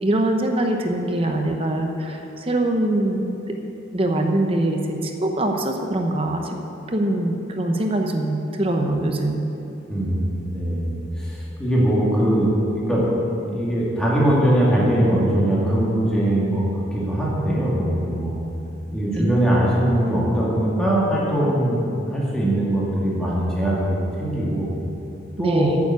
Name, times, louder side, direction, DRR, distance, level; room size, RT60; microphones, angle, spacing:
voice 1, 0.0-3.6 3.9-6.6 6.9-9.5 19.2-19.3 25.4-25.8, right 1 dB, 30° right, 3 dB, 0.8 m, -23 dB
voice 2, 9.9-10.9 11.2-13.1 13.5-18.4 18.9-24.7 25.4-25.7, right 1 dB, 5° left, -7 dB, 2.2 m, -21 dB
9.5 x 7.1 x 8.2 m, 2.9 s
head